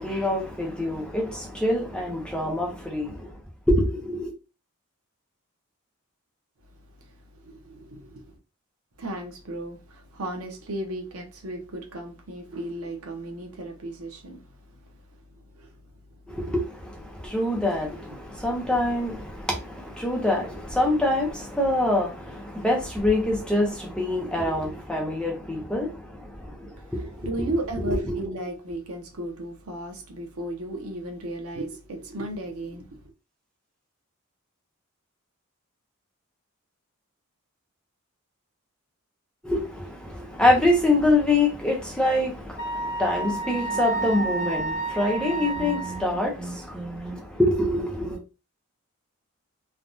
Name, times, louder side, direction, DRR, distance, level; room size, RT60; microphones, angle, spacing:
voice 1, 0.0-3.3 3.7-4.3 16.3-27.0 27.8-28.2 39.4-48.2, left 1 dB, 5° left, 0.6 m, -25 dB
voice 2, 7.1-8.3 9.0-14.5 14.8-14.9 15.4-15.8 16.4-16.5 26.7-33.0, right 1 dB, 80° right, 0.8 m, -35 dB
Wind instrument woodwind instrument, 42.6-46.1, right 3 dB, 55° left, 0.5 m, -30 dB
3.4 x 2.3 x 2.6 m
head